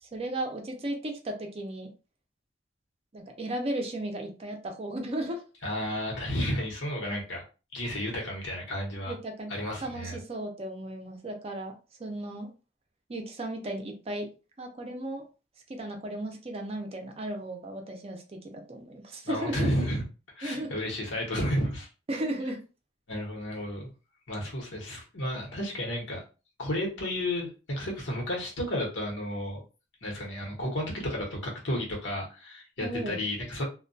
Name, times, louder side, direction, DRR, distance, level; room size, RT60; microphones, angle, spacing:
voice 1, 0.1-1.9 3.1-5.4 9.1-9.5 9.8-11.7 12.0-12.5 13.1-14.3 14.6-15.2 15.7-19.7 20.4-20.7 22.1-22.6 32.8-33.2, right 1 dB, 30° right, 3 dB, 0.5 m, -35 dB
voice 2, 5.6-7.4 7.7-9.1 9.5-10.2 19.2-20.0 20.3-21.9 23.1-23.9 24.3-26.2 26.6-29.6 30.0-33.6, equal, 85° left, -1 dB, 1.0 m, -32 dB
2.2 x 2.1 x 2.6 m, 0.33 s
head